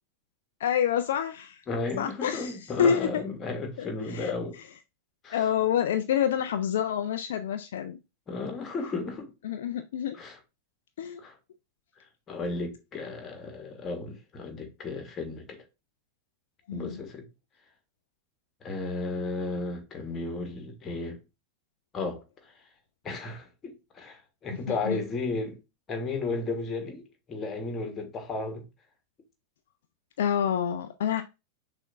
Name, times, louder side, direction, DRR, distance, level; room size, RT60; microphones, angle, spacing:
voice 1, 0.6-1.6 2.0-3.2 3.8-4.3 5.3-8.0 9.4-10.2 11.0-11.2 16.7-17.0 24.5-25.0 30.2-31.2, left 8 dB, 60° left, 0.3 m, -28 dB
voice 2, 1.7-4.5 5.2-5.4 8.3-9.3 10.1-10.4 11.2-11.4 12.3-15.6 16.7-17.3 18.6-21.2 21.9-22.2 23.0-25.6 25.9-28.6, left 3 dB, 25° left, 1.2 m, -34 dB
6.2 x 2.5 x 2.5 m
figure-of-eight pair, 90°, 0 cm